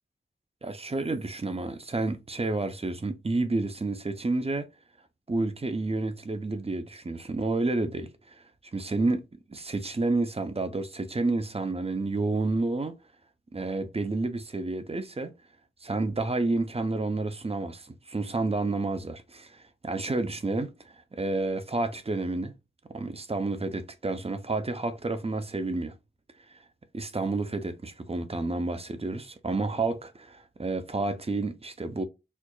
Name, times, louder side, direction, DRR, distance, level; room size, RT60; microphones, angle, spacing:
voice 1, 0.6-4.7 5.3-8.4 8.7-9.2 9.5-13.0 13.5-15.3 15.8-22.5 22.9-25.9 26.5-26.6 26.9-32.0, right 3 dB, 30° right, 0.6 m, -30 dB
4.4 x 2.5 x 2.3 m
wide cardioid pair, 75°, 19 cm